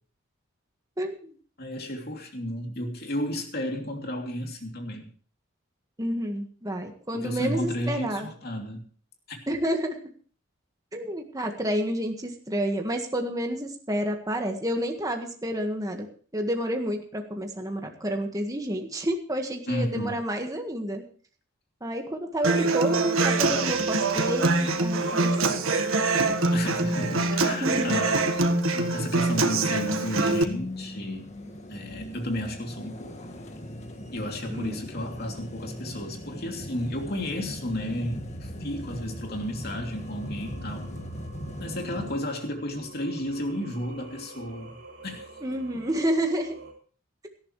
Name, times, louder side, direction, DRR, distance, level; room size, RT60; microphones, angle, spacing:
voice 1, 1.0-1.3 6.0-8.3 9.5-10.0 10.9-16.1 16.3-21.0 21.8-25.5 27.6-28.0 34.5-34.8 45.4-46.6, equal, 15° right, 3 dB, 1.6 m, -29 dB
voice 2, 1.6-5.1 7.1-8.9 9.3-9.4 19.7-20.2 26.5-28.3 28.7-31.3 31.7-33.3 34.1-40.9 41.6-45.3, equal, 50° left, 2 dB, 2.9 m, -33 dB
Human voice / Acoustic guitar, 22.4-30.4, right 3 dB, 85° right, 1.5 m, -24 dB
sound 1, 26.0-42.1, left 1 dB, 35° left, 1.7 m, -38 dB
Singing, 38.5-46.7, right 2 dB, 50° right, 6.2 m, -49 dB
18.0 x 13.5 x 3.2 m, 0.44 s
head